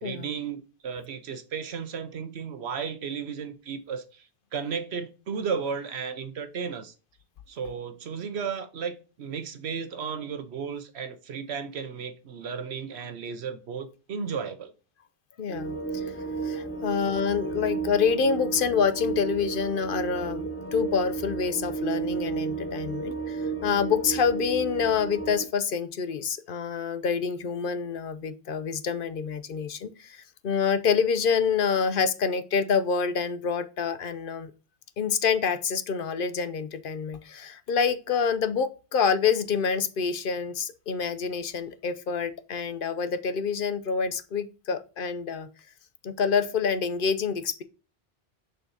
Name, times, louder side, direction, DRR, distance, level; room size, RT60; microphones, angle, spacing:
voice 1, 0.0-6.9 7.5-14.7, right 6 dB, 85° right, 1.2 m, -34 dB
voice 2, 15.4-16.0 16.4-34.5 35.0-45.5 46.0-47.6, left 6 dB, 60° left, 0.8 m, -27 dB
sound 1, 15.5-25.4, right 4 dB, 20° left, 0.4 m, -32 dB
6.6 x 5.8 x 2.8 m
omnidirectional pair, 1.1 m